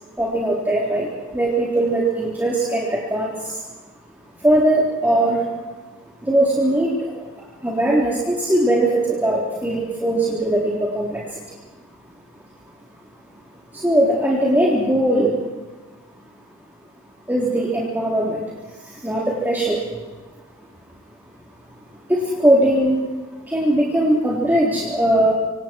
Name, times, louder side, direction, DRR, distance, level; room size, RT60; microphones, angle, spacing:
voice 1, 0.2-3.6 4.4-5.4 6.2-11.4 13.7-15.3 17.3-18.4 18.8-19.8 22.1-23.0 23.5-25.3, right 1 dB, 10° right, -4 dB, 3.7 m, -20 dB
27.5 x 26.0 x 4.7 m, 1.3 s
head